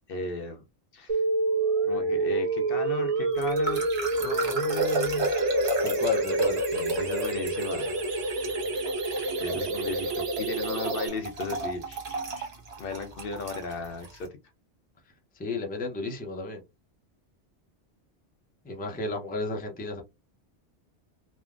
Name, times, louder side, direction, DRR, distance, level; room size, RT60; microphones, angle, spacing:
voice 1, 0.1-0.6 0.9-1.2 1.8-3.8 4.2-5.3 6.7-8.0 9.4-12.5 12.8-14.3, left 3 dB, 65° left, 0.7 m, -36 dB
sound 1, 1.1-11.1, right 3 dB, 50° right, 0.4 m, -28 dB
sound 2, 3.4-14.2, right 1 dB, 65° right, 1.3 m, -32 dB
voice 2, 5.8-6.6 9.5-9.7 15.4-16.6 18.6-20.0, left 2 dB, 10° left, 0.5 m, -33 dB
3.3 x 2.1 x 2.4 m
omnidirectional pair, 1.1 m